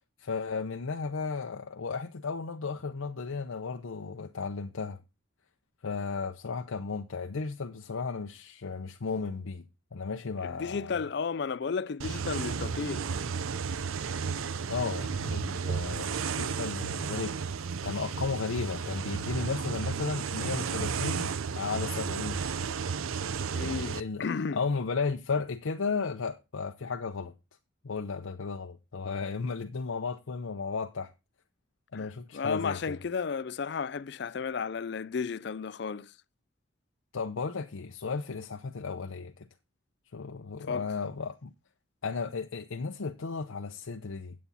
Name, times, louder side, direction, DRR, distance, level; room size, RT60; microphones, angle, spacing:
voice 1, 0.2-5.0 5.8-9.6 9.9-10.9 14.7-17.3 17.8-22.4 23.6-24.3 24.5-27.3 27.8-31.1 31.9-33.0 37.1-39.5 40.1-41.5 42.0-44.4, left 4 dB, 90° left, 0.7 m, -34 dB
voice 2, 10.4-13.1 23.5-24.6 31.9-36.1 40.7-40.9, left 5 dB, 55° left, 0.4 m, -33 dB
sound 1, 12.0-24.0, right 5 dB, 90° right, 0.6 m, -33 dB
9.3 x 8.5 x 4.1 m
head